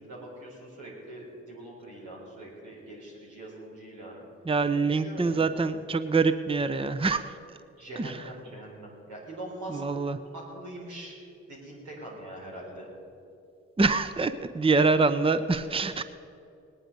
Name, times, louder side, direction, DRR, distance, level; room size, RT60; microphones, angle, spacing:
voice 1, 0.0-4.2 4.7-5.5 7.8-10.1 10.3-11.2 11.5-12.9, right 1 dB, 90° right, -4 dB, 4.2 m, -43 dB
voice 2, 4.5-7.4 8.0-8.2 9.7-10.2 13.8-16.0, right 4 dB, 20° right, 12 dB, 0.7 m, -25 dB
18.5 x 10.0 x 5.2 m, 2.7 s
supercardioid pair, 45°, 29 cm